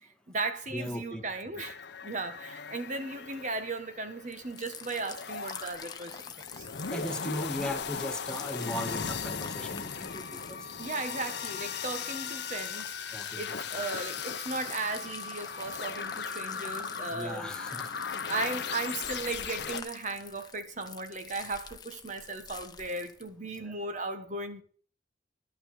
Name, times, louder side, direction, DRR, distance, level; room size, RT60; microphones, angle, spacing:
voice 1, 0.0-6.7 10.8-17.5 18.3-24.6, right 3 dB, 40° right, 1.5 m, -36 dB
voice 2, 0.7-1.2 6.9-10.6 13.1-13.6 17.1-17.9 23.6-23.7, left 1 dB, 5° left, 1.4 m, -37 dB
sound 1, 1.6-19.8, left 6 dB, 60° left, 0.8 m, -38 dB
sound 2, 4.3-23.3, left 6 dB, 20° left, 0.9 m, -46 dB
11.5 x 5.7 x 8.9 m
head